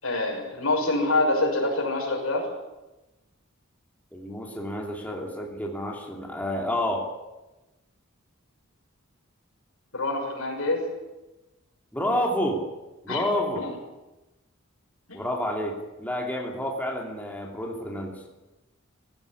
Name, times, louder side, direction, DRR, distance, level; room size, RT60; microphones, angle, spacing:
voice 1, 0.0-2.5 9.9-10.9 13.1-13.2 13.5-13.7 15.1-15.2, left 2 dB, 75° left, 2 dB, 6.2 m, -26 dB
voice 2, 4.1-7.1 11.9-12.6 13.0-13.7 15.1-18.1, left 1 dB, 10° left, 0 dB, 3.0 m, -29 dB
19.5 x 16.0 x 9.9 m, 1.0 s
head